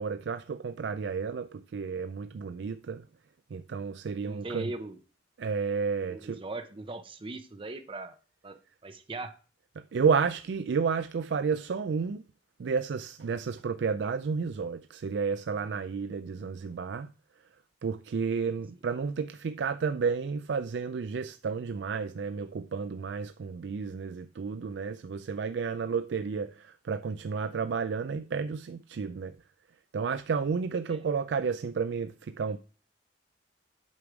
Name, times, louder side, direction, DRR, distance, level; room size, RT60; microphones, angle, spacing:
voice 1, 0.0-3.0 3.5-4.7 5.4-6.4 9.9-12.2 12.6-17.1 17.8-29.3 29.9-32.6, right 5 dB, 75° right, 0.4 m, -31 dB
voice 2, 4.2-5.0 6.0-8.1 8.4-9.3 30.9-31.0, right 2 dB, 30° right, 0.6 m, -40 dB
8.2 x 5.2 x 4.7 m
head